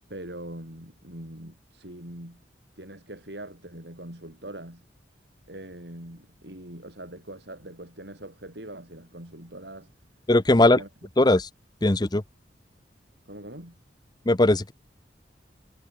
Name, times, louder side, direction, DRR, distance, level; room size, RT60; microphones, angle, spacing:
voice 1, 0.1-2.4 2.8-4.8 5.5-9.9 10.5-10.9 13.3-13.7, right 1 dB, 70° right, 7.6 m, -42 dB
voice 2, 10.3-10.8 11.2-11.5 11.8-12.2 14.3-14.7, left 2 dB, 25° left, 0.8 m, -19 dB
head